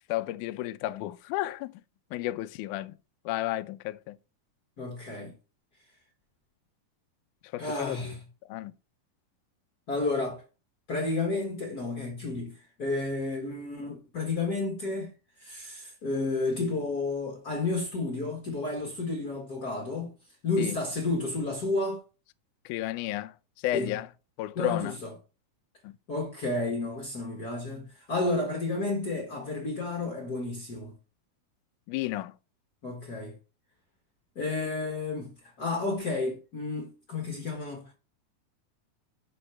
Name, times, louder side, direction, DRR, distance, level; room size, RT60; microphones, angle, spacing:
voice 1, 0.1-1.7 2.1-2.9 3.3-4.2 7.5-8.1 8.5-8.7 20.6-20.8 22.7-23.3 23.6-24.1 24.4-25.0 25.8-25.9 31.9-32.3, left 15 dB, 80° left, 1.8 m, -32 dB
voice 2, 4.8-5.3 7.6-8.2 9.9-10.4 10.9-15.1 15.4-20.1 20.4-22.0 23.7-24.0 24.5-25.1 26.1-30.9 32.8-33.4 34.3-37.9, left 3 dB, 60° left, 1.0 m, -31 dB
6.3 x 5.4 x 5.8 m
omnidirectional pair, 4.0 m